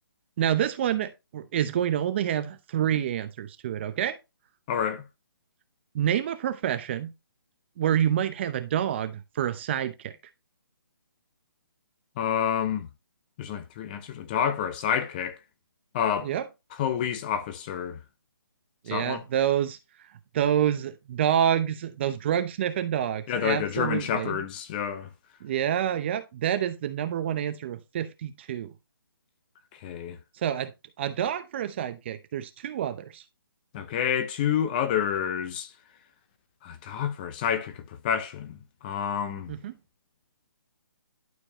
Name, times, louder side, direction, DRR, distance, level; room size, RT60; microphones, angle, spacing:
voice 1, 0.4-4.2 5.9-7.1 7.8-10.1 16.2-16.4 18.9-19.8 20.3-24.4 25.4-28.7 30.4-30.7 31.0-33.2 39.5-39.8, right 10 dB, 30° right, 0.7 m, -27 dB
voice 2, 4.7-5.0 12.2-12.9 13.4-15.4 15.9-16.3 16.8-18.0 18.9-19.2 23.3-25.1 29.8-30.2 33.7-35.7 36.6-38.6 38.8-39.5, left 8 dB, 25° left, 0.8 m, -28 dB
11.5 x 4.6 x 2.8 m
hypercardioid pair, 155°, 12 cm